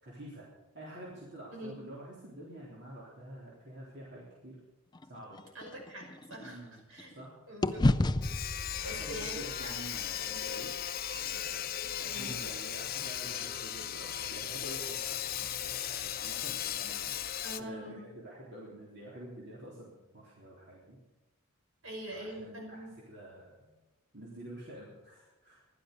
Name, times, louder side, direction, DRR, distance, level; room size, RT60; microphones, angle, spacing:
voice 1, 0.0-0.4 0.7-4.6 5.0-5.4 6.4-6.9 7.1-7.4 8.2-8.4 8.8-10.7 11.1-11.7 12.0-17.1 17.6-21.0 22.1-23.7 24.1-25.6, right 1 dB, 50° right, -5 dB, 3.6 m, -48 dB
sound 1, 4.9-7.2 7.6-11.9, left 2 dB, 20° left, 0.4 m, -34 dB
voice 2, 5.5-6.6 6.9-7.1 7.5-7.9 8.4-9.7 12.1-12.3 17.4-18.0 21.8-22.9, equal, 65° right, 0 dB, 5.3 m, -43 dB
Sawing, 8.2-17.6, left 10 dB, 45° left, 0.7 m, -37 dB
16.0 x 12.0 x 6.7 m, 1.1 s
head